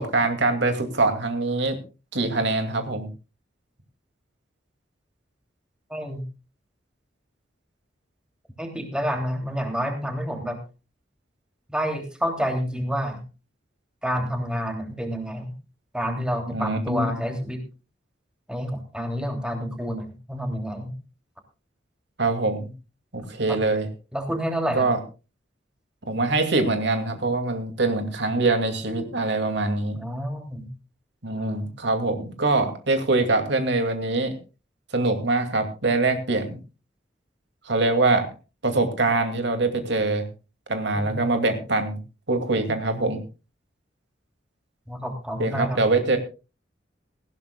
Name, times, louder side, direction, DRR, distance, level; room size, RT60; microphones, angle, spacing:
voice 1, 0.0-1.8 2.1-3.1 16.5-17.1 22.2-22.7 23.1-23.9 24.8-25.0 26.1-30.0 31.2-34.3 34.9-36.6 37.7-38.3 38.6-40.2 40.7-42.0 42.3-43.2 45.4-46.2, right 2 dB, 70° right, 6 dB, 2.6 m, -23 dB
voice 2, 5.9-6.2 8.6-10.6 11.7-13.2 14.0-15.5 15.9-17.6 18.5-20.9 23.5-23.6 24.1-24.9 29.9-30.7 40.9-41.2 44.9-45.8, equal, 5° right, 4 dB, 3.2 m, -29 dB
19.0 x 16.0 x 2.4 m, 0.31 s
head